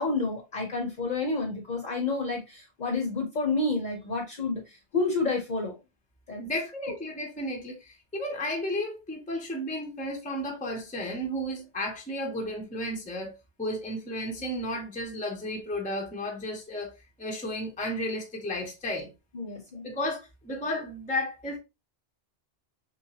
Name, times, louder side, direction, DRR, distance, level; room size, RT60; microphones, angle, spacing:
voice 1, 0.0-4.6 4.9-5.7 6.3-6.5 19.3-19.9, left 3 dB, 50° left, 0.9 m, -29 dB
voice 2, 6.4-19.1 19.8-21.6, left 1 dB, 10° left, 0.6 m, -33 dB
3.2 x 3.0 x 2.8 m
omnidirectional pair, 1.1 m